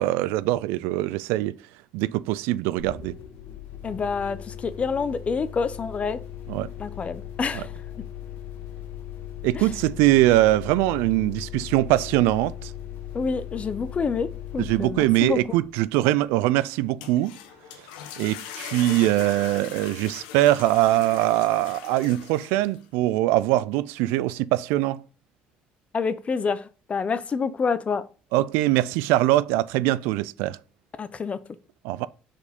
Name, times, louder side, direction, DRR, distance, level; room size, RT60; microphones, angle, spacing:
voice 1, 0.0-1.6 1.9-3.1 6.5-6.7 7.5-7.6 9.4-12.7 14.6-17.3 18.2-25.0 28.3-30.6 31.8-32.1, right 16 dB, 80° right, 0.3 m, -22 dB
sound 1, 2.8-16.3, left 10 dB, 70° left, 1.4 m, -38 dB
voice 2, 3.8-6.2 6.8-7.7 9.5-9.7 13.1-15.4 25.9-28.0 31.0-31.4, left 5 dB, 35° left, 0.7 m, -27 dB
Flushing a toilet, 16.8-22.8, left 9 dB, 90° left, 0.9 m, -40 dB
4.8 x 4.4 x 5.2 m
supercardioid pair, 85°, 4 cm